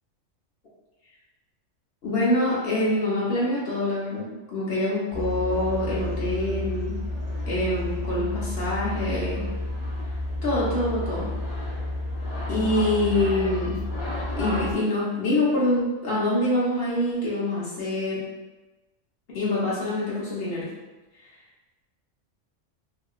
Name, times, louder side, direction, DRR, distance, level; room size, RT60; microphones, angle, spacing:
voice 1, 2.0-7.0 7.5-9.4 10.4-11.3 12.5-13.8 14.4-18.2 19.3-20.7, left 1 dB, 55° left, -8 dB, 1.1 m, -25 dB
sound 1, 5.1-14.7, left 1 dB, 80° left, 1.3 m, -31 dB
2.9 x 2.7 x 2.4 m, 1.1 s
omnidirectional pair, 1.3 m